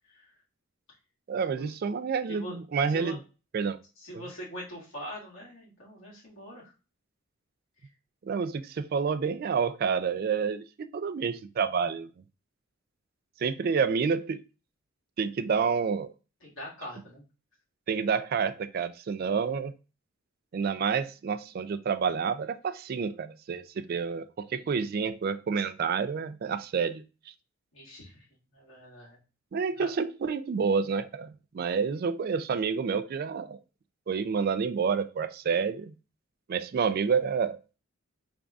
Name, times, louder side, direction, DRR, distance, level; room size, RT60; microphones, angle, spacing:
voice 1, 1.3-3.2 3.5-3.8 4.1-4.2 8.2-12.1 13.4-14.4 15.2-16.1 17.9-19.7 20.5-27.0 29.5-31.3 31.5-33.6 34.1-35.9 36.5-37.6, right 6 dB, 45° right, 0.3 m, -29 dB
voice 2, 4.0-6.7 16.4-17.2 27.7-28.2 28.5-29.2 29.8-29.9, equal, 70° left, 2.0 m, -43 dB
5.2 x 3.5 x 2.4 m
head